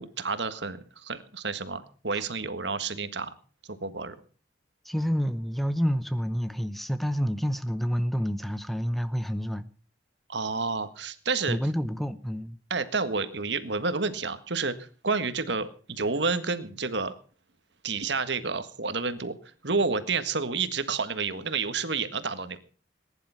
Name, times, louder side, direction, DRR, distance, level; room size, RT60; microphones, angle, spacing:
voice 1, 0.0-3.3 3.8-4.1 10.3-11.6 12.7-14.7 15.0-17.1 17.8-19.4 19.6-22.6, right 4 dB, 65° right, 11 dB, 1.6 m, -30 dB
voice 2, 4.8-9.7 11.5-12.6, equal, ahead, 13 dB, 0.7 m, -28 dB
20.0 x 10.5 x 5.7 m, 0.40 s
head